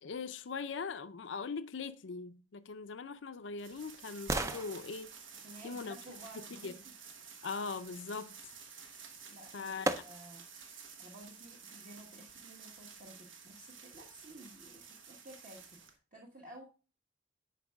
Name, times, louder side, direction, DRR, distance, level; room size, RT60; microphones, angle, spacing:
voice 1, 0.0-5.1 5.6-6.0 6.6-6.7 7.4-8.6 9.5-10.0, left 5 dB, 75° left, 0.5 m, -41 dB
sound 1, 2.7-6.8 8.9-9.0 9.8-10.5 11.0-11.1, right 2 dB, 15° right, 0.4 m, -40 dB
sound 2, 3.6-16.0, right 6 dB, 85° right, 1.3 m, -52 dB
voice 2, 5.4-6.8 9.3-9.7 10.0-10.4 11.0-16.6, right 1 dB, 45° right, 1.3 m, -53 dB
10.5 x 4.7 x 2.3 m
head